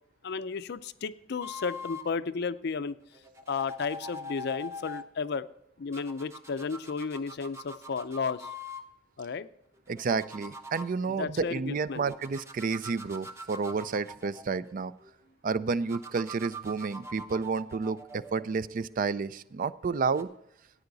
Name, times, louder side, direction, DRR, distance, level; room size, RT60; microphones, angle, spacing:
voice 1, 0.2-3.0 3.5-5.5 5.8-8.5 9.2-9.5 11.1-12.1, left 5 dB, 60° left, 14 dB, 0.5 m, -33 dB
sound 1, 1.4-2.1 3.1-5.1 5.9-8.9 9.8-10.9 12.0-15.1 15.9-19.2 20.0-20.2, left 1 dB, 15° right, 0.8 m, -44 dB
voice 2, 9.9-14.9 15.4-20.3, right 4 dB, 45° right, 16 dB, 0.4 m, -30 dB
14.0 x 9.6 x 4.0 m, 0.76 s
head